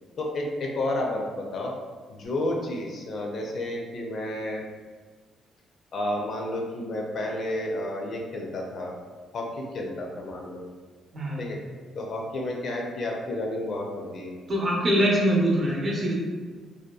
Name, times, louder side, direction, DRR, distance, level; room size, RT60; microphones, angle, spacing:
voice 1, 0.2-1.7 2.1-4.6 5.9-8.9 9.3-10.6 11.4-11.6 12.0-14.3, left 1 dB, 55° left, 0 dB, 0.4 m, -31 dB
voice 2, 11.1-11.4 14.5-16.1, equal, 40° right, -3 dB, 0.7 m, -23 dB
2.7 x 2.2 x 2.2 m, 1.4 s
cardioid pair, 90°, 0 cm